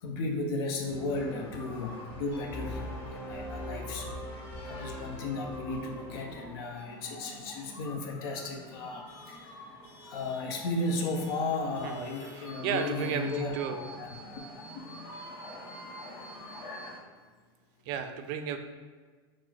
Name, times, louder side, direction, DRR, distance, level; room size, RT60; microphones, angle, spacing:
voice 1, 0.0-4.1 4.6-14.1 14.8-15.0, left 2 dB, 65° left, 3 dB, 0.7 m, -35 dB
sound 1, 0.8-6.5, equal, 10° left, 1.2 m, -48 dB
sound 2, 1.1-17.0, left 1 dB, 50° left, 1.1 m, -47 dB
sound 3, 2.5-6.4, left 1 dB, 30° left, 0.8 m, -41 dB
voice 2, 11.8-13.8 17.9-18.6, right 8 dB, 60° right, 7 dB, 0.4 m, -34 dB
4.3 x 2.0 x 4.4 m, 1.5 s
supercardioid pair, 125°, 13 cm